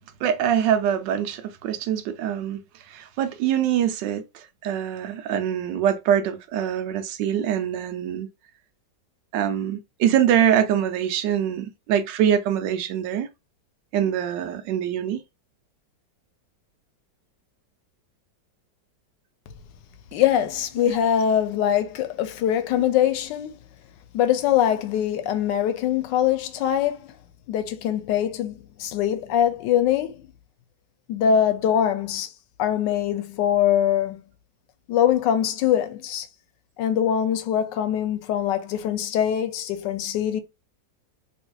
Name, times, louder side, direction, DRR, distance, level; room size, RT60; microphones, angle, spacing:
voice 1, 0.2-2.6 2.9-8.3 9.3-13.3 13.9-15.2, right 9 dB, 80° right, 1.3 m, -24 dB
voice 2, 20.1-23.6 24.1-27.1 27.5-30.2 31.1-32.3 32.6-34.2 34.9-36.3 36.8-40.4, left 9 dB, 80° left, 1.2 m, -23 dB
3.4 x 3.1 x 2.2 m
omnidirectional pair, 1.9 m